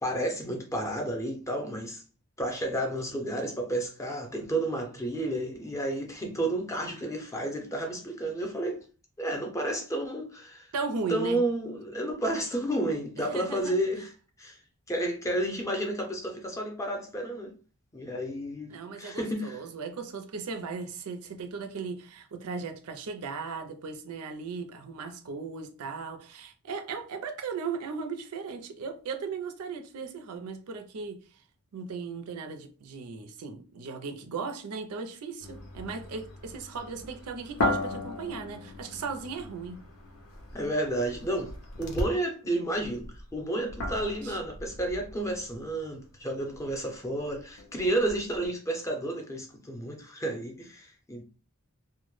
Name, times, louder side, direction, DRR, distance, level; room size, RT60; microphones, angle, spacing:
voice 1, 0.0-2.0 2.4-8.8 9.2-10.7 11.1-14.1 14.4-14.6 14.9-17.5 17.9-18.7 19.0-19.6 40.5-41.5 41.8-51.2, right 1 dB, 15° left, 0.5 m, -31 dB
voice 2, 10.7-11.4 13.2-13.7 18.7-31.2 31.7-39.8 44.2-44.4, right 5 dB, 80° right, 0.4 m, -37 dB
sound 1, 35.4-42.3 42.7-48.5, left 2 dB, 75° left, 0.6 m, -37 dB
2.1 x 2.0 x 3.0 m
head